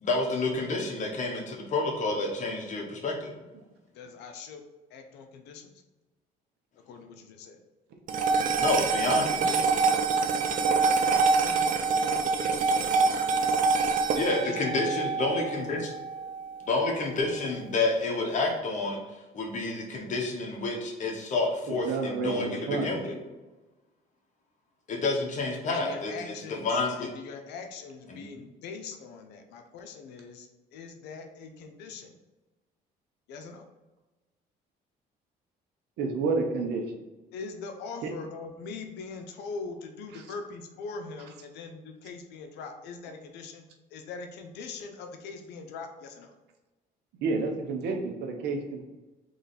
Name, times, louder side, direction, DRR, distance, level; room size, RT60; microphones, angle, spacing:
voice 1, 0.0-3.3 8.6-9.6 14.1-15.9 16.7-19.0 19.3-23.2 24.9-27.1 28.1-28.3, left 3 dB, 45° left, 0 dB, 1.3 m, -29 dB
voice 2, 3.9-4.6 4.9-5.7 6.9-7.6 10.4-13.5 14.4-14.9 25.5-32.1 33.3-33.6 37.3-43.7 43.9-46.3, left 4 dB, 90° left, 5 dB, 0.7 m, -42 dB
sound 1, 8.1-16.6, right 4 dB, 55° right, 0.5 m, -25 dB
voice 3, 21.7-23.0 36.0-36.8 38.0-38.1 40.1-40.2 47.2-48.8, right 4 dB, 80° right, 2 dB, 1.0 m, -30 dB
3.8 x 3.2 x 4.1 m, 1.1 s
cardioid pair, 110°, 17 cm